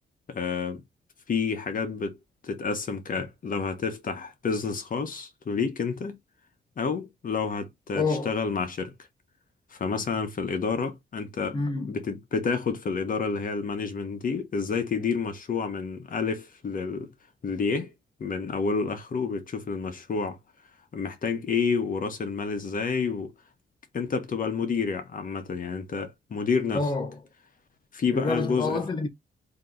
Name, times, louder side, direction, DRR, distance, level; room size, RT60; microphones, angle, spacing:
voice 1, 0.3-0.8 1.3-2.2 2.4-6.2 6.8-8.9 9.7-11.6 11.9-17.1 17.4-17.9 18.2-20.4 20.9-23.3 23.9-26.9 27.9-28.8, left 5 dB, 50° left, 1.2 m, -29 dB
voice 2, 7.9-8.3 11.5-11.9 26.7-27.1 28.1-29.1, left 3 dB, 25° left, 0.8 m, -27 dB
3.7 x 3.0 x 3.7 m
cardioid pair, 90°, 18 cm